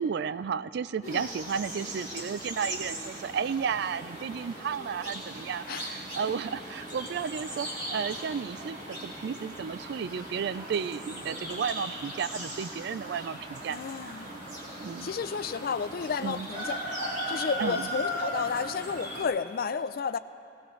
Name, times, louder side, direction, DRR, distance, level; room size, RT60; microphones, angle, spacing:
voice 1, 0.0-13.8 14.8-15.1 16.2-16.5 17.6-17.9, right 6 dB, 65° right, 16 dB, 0.3 m, -33 dB
sound 1, 1.0-19.2, equal, 45° right, 2.3 m, -38 dB
voice 2, 13.7-14.3 15.0-16.7 17.0-20.2, left 5 dB, 55° left, 12 dB, 0.4 m, -32 dB
18.5 x 17.5 x 3.2 m, 2.6 s
head